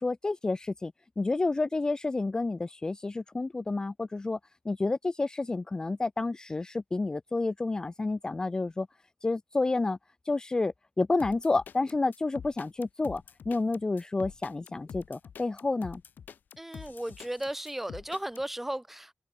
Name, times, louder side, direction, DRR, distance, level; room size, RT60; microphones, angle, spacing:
voice 1, 0.0-4.4 4.6-8.9 9.2-10.0 10.3-16.0, left 3 dB, 25° left, 0.5 m, -30 dB
sound 1, 11.2-18.4, left 7 dB, 75° left, 0.7 m, -46 dB
voice 2, 16.6-19.1, right 1 dB, 10° right, 1.3 m, -35 dB
open air
wide cardioid pair, 130°, 3 cm